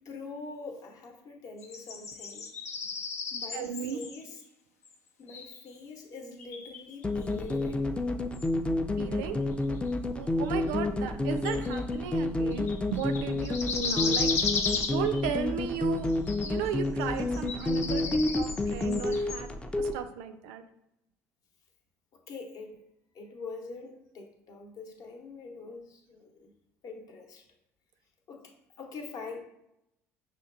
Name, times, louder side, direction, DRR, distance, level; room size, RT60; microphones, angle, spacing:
voice 1, 0.0-2.5 3.3-4.4 5.2-8.2 22.3-22.7 23.1-26.5 26.8-27.4 28.3-28.4 28.8-29.4, left 4 dB, 55° left, 3 dB, 0.8 m, -44 dB
sound 1, 1.6-4.2 4.8-4.9 5.3-5.7 6.4-7.6 8.3-8.5 9.9-10.0 10.5-10.6 11.4-12.1 12.5-15.4 16.0-16.7 17.0-19.5, left 5 dB, 85° left, 0.4 m, -35 dB
voice 2, 3.5-4.0 9.0-9.4 10.1-14.3 14.9-16.1 16.4-19.5 19.8-20.6, right 8 dB, 65° right, 9 dB, 0.4 m, -35 dB
sound 2, 7.0-20.0, left 2 dB, 15° left, 0.3 m, -29 dB
5.8 x 2.2 x 2.5 m, 0.83 s
figure-of-eight pair, 60°, 8 cm